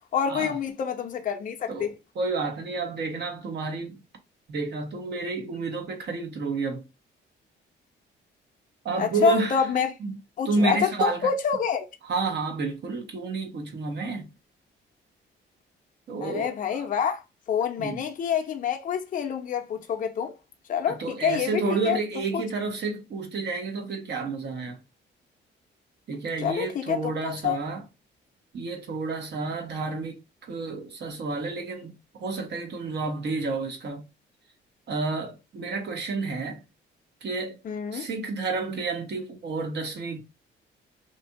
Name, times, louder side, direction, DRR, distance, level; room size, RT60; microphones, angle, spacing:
voice 1, 0.1-1.9 9.0-9.9 10.4-11.9 16.2-20.3 20.7-22.0 22.3-22.4 26.4-27.6 37.6-38.1, left 7 dB, 40° left, 0.5 m, -27 dB
voice 2, 1.7-4.0 4.5-6.8 8.8-9.7 10.0-10.2 10.4-11.3 12.0-14.3 16.1-16.8 17.8-18.0 20.9-24.8 26.1-27.8 28.5-31.9 32.2-34.0 34.9-36.6 37.2-37.6 37.9-40.2, right 3 dB, 60° right, 1.1 m, -30 dB
2.8 x 2.5 x 2.2 m
cardioid pair, 90°, 20 cm